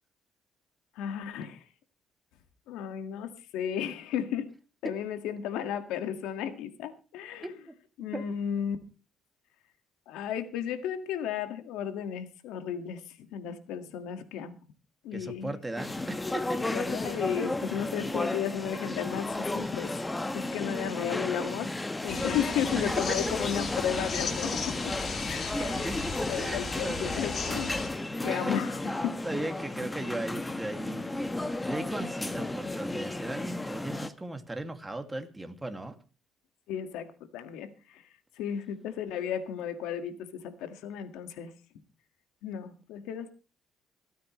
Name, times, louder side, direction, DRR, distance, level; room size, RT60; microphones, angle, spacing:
voice 1, 1.0-1.6 2.7-4.5 4.8-7.5 8.0-8.8 10.1-14.5 15.0-15.5 16.6-19.9 20.3-21.7 22.0-24.6 24.8-24.9 25.5-25.9 26.3-27.7 28.2-29.2 36.7-37.1 37.3-38.0 38.4-41.5 42.4-43.3, left 9 dB, 90° left, 9 dB, 1.9 m, -34 dB
voice 2, 7.4-7.7 8.1-8.2 15.1-16.7 22.8-23.0 25.6-27.1 28.3-28.6 29.2-31.2 31.5-36.0, right 2 dB, 10° right, 6 dB, 2.3 m, -37 dB
sound 1, 15.8-34.1, left 2 dB, 15° left, 1.3 m, -33 dB
sound 2, 22.1-27.9, left 5 dB, 50° left, 2.8 m, -36 dB
26.0 x 9.4 x 3.2 m, 0.34 s
cardioid pair, 95°, 0 cm